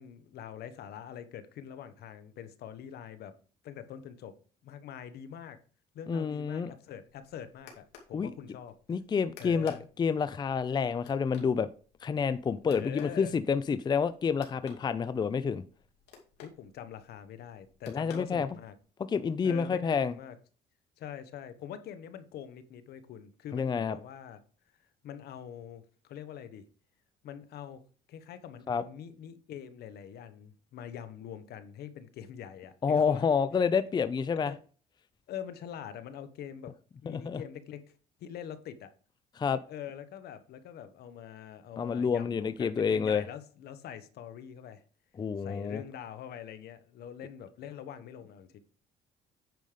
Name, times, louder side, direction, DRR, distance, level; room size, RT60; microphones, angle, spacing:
voice 1, 0.0-3.3 3.6-4.3 4.6-5.6 5.9-8.8 9.4-9.8 12.7-13.3 16.4-18.7 19.4-20.4 21.0-24.4 25.0-26.7 27.2-27.8 28.1-33.2 34.4-34.6 35.3-36.7 37.0-37.8 38.2-38.9 39.7-44.8 45.4-48.6, left 9 dB, 70° left, 1.1 m, -44 dB
voice 2, 6.1-6.7 8.1-8.3 8.9-11.7 12.0-15.6 17.9-18.5 19.1-20.1 23.5-24.0 28.7-28.8 32.8-34.5 37.1-37.4 39.4-39.6 41.8-43.2 45.2-45.8, left 6 dB, 25° left, 0.5 m, -29 dB
sound 1, 7.0-18.9, left 6 dB, 90° left, 2.5 m, -57 dB
9.3 x 5.3 x 5.0 m
cardioid pair, 110°, 17 cm